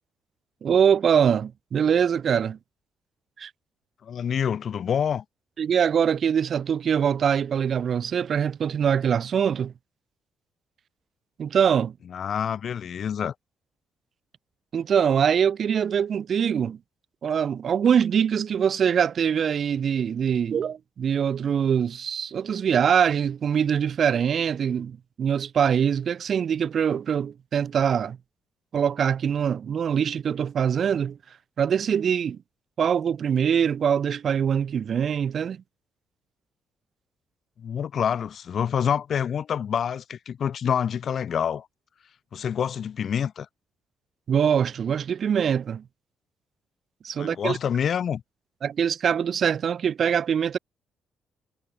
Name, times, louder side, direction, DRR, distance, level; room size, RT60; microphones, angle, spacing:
voice 1, 0.6-2.6 3.4-3.5 5.6-9.7 11.4-11.9 14.7-16.8 17.2-28.2 28.7-31.2 31.6-32.4 32.8-35.6 44.3-45.8 47.0-47.6 48.6-50.6, right 8 dB, 55° right, 2.5 m, -23 dB
voice 2, 4.0-5.2 12.1-13.3 37.6-41.7 42.3-43.5 47.2-48.2, left 8 dB, 55° left, 1.5 m, -27 dB
cardioid pair, 90°, 0 cm